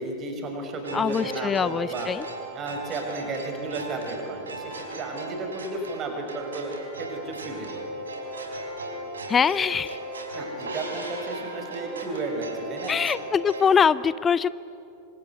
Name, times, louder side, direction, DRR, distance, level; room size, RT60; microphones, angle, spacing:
voice 1, 0.0-2.1 2.5-6.7 7.0-7.7 10.3-13.0, right 2 dB, 30° right, 3 dB, 6.0 m, -33 dB
sound 1, 0.8-13.7, right 2 dB, 70° right, 4.8 m, -37 dB
voice 2, 0.9-2.3 9.3-10.0 12.9-14.5, left 6 dB, 20° left, 18 dB, 0.6 m, -23 dB
27.0 x 25.0 x 8.3 m, 2.7 s
figure-of-eight pair, 90°, 0 cm